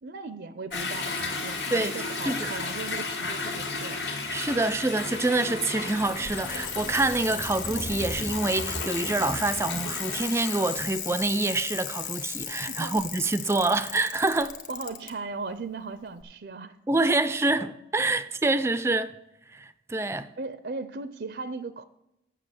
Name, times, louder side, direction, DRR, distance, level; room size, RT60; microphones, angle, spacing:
voice 1, 0.0-4.0 12.7-13.0 14.4-16.8 20.4-21.8, right 3 dB, 70° right, 0.5 m, -37 dB
Toilet flush / Drip / Trickle dribble, 0.7-10.8, left 3 dB, 85° left, 2.0 m, -34 dB
voice 2, 4.3-14.5 16.9-19.1 19.5-20.3, right 2 dB, 15° right, 0.3 m, -26 dB
Bicycle, 5.6-15.1 16.2-16.3, left 8 dB, 45° left, 0.9 m, -36 dB
7.5 x 6.6 x 7.7 m
head